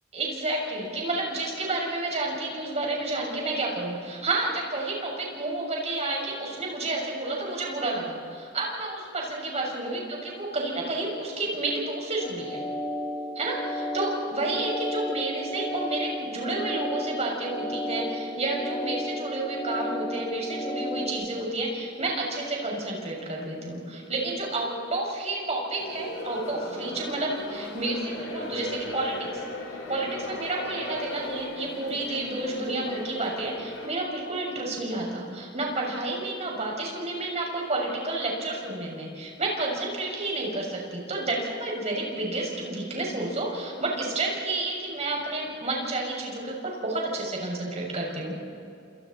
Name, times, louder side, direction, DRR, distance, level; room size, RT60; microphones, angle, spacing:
voice 1, 0.1-12.6 13.3-29.3 29.9-48.4, right 2 dB, 35° right, -2 dB, 6.6 m, -30 dB
sound 1, 12.2-21.1, left 1 dB, 30° left, 3.0 m, -33 dB
sound 2, 25.8-33.9, left 1 dB, 85° left, 5.0 m, -37 dB
29.5 x 27.5 x 4.3 m, 2.6 s
head